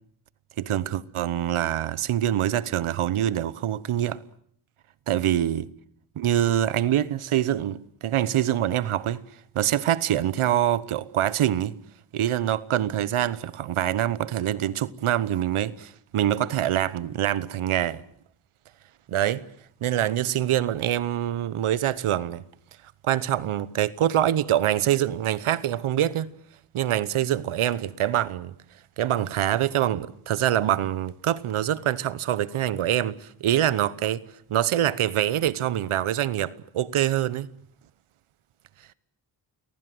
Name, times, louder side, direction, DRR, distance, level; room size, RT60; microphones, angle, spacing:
voice 1, 0.6-4.2 5.1-5.7 6.2-9.2 9.5-11.8 12.1-18.0 19.1-19.4 19.8-22.4 23.0-26.3 26.7-28.5 29.0-34.2 34.5-37.5, right 11 dB, 85° right, 1.1 m, -25 dB
29.5 x 20.5 x 7.8 m
cardioid pair, 80°, 49 cm